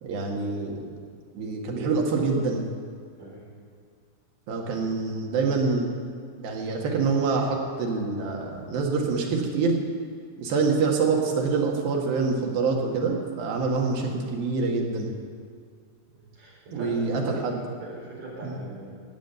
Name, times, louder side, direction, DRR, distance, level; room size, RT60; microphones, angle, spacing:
voice 1, 0.0-0.9 1.3-2.6 4.5-5.9 6.4-9.7 10.4-15.1 16.7-17.6 18.4-18.6, right 4 dB, 80° right, 0 dB, 3.6 m, -26 dB
voice 2, 3.2-3.5 16.1-17.5 17.8-19.0, right 2 dB, 50° right, -4 dB, 5.3 m, -41 dB
17.5 x 7.3 x 8.1 m, 2.1 s
omnidirectional pair, 4.2 m